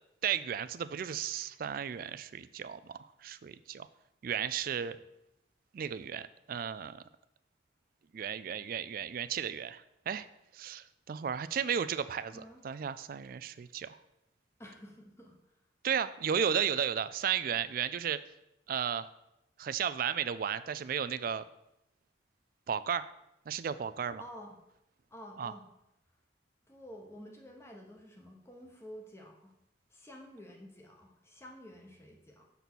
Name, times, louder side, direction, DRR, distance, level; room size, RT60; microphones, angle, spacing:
voice 1, 0.2-3.9 4.2-5.0 5.7-7.0 8.1-10.3 10.5-14.0 15.8-18.2 18.7-19.1 19.6-21.4 22.7-23.1 23.5-24.2 25.4-25.5, right 8 dB, 45° right, 14 dB, 0.3 m, -34 dB
voice 2, 14.6-15.6 24.2-24.5 25.1-25.7 26.7-29.5 29.9-32.4, equal, 15° left, 1 dB, 0.9 m, -50 dB
6.8 x 4.2 x 6.1 m, 0.86 s
head